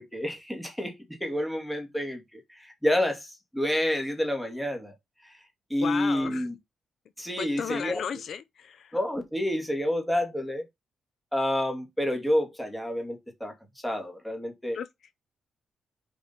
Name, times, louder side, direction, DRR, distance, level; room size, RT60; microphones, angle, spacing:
voice 1, 0.0-4.9 5.2-5.4 5.7-6.5 7.2-8.0 8.9-10.6 11.3-13.5 13.8-14.8, left 1 dB, ahead, 2.3 m, -29 dB
voice 2, 5.8-6.5 7.4-9.0 14.7-14.9, left 8 dB, 65° left, 0.6 m, -34 dB
5.2 x 5.0 x 5.4 m
cardioid pair, 130°, 0 cm